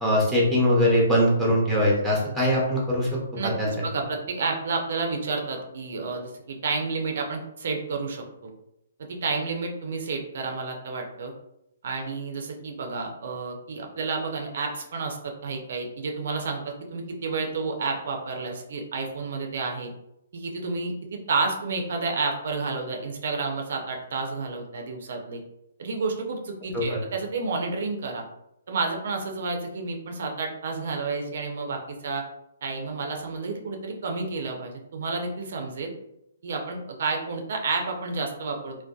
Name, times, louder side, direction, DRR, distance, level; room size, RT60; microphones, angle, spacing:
voice 1, 0.0-3.7 26.7-27.0, equal, ahead, -5 dB, 0.6 m, -22 dB
voice 2, 3.4-8.2 9.1-11.3 11.8-19.9 20.3-25.4 25.8-28.2 28.7-32.2 32.6-35.9 36.4-38.8, right 4 dB, 60° right, 3 dB, 0.4 m, -30 dB
2.6 x 2.1 x 2.3 m, 0.83 s
hypercardioid pair, 160°, 0 cm